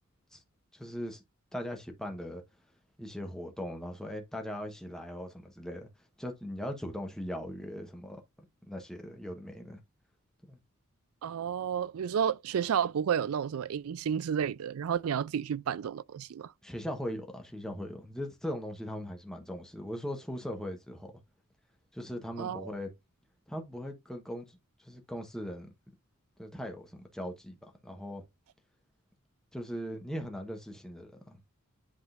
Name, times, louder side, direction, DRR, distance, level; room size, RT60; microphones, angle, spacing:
voice 1, 0.7-1.2 1.5-2.4 3.0-5.9 6.2-8.2 8.6-9.8 10.4-10.6 16.6-21.1 21.9-22.9 23.5-25.7 26.4-28.2 29.5-31.4, equal, 5° left, 1.0 m, -39 dB
voice 2, 11.2-16.5 22.4-22.7, right 8 dB, 80° right, 0.4 m, -31 dB
10.5 x 3.7 x 2.5 m
head